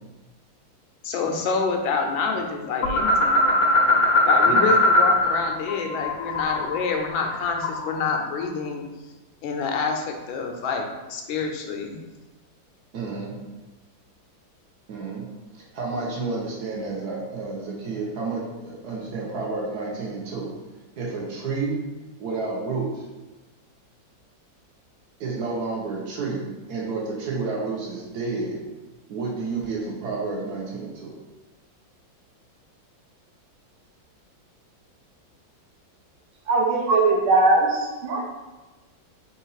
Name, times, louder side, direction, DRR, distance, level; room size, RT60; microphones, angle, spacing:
voice 1, 1.0-3.4 4.2-8.9 9.4-12.0, left 5 dB, 80° left, 3 dB, 1.4 m, -27 dB
sound 1, 2.8-5.4 5.7-8.0, left 2 dB, 65° left, 0.9 m, -20 dB
voice 2, 12.9-13.3 14.9-15.2 15.5-20.5 21.0-21.8 22.2-23.1 25.2-28.6 29.1-31.1, right 3 dB, 60° right, -2 dB, 1.2 m, -30 dB
voice 3, 36.5-38.2, right 3 dB, 90° right, -1 dB, 1.6 m, -20 dB
4.1 x 2.6 x 3.9 m, 1.1 s
omnidirectional pair, 2.1 m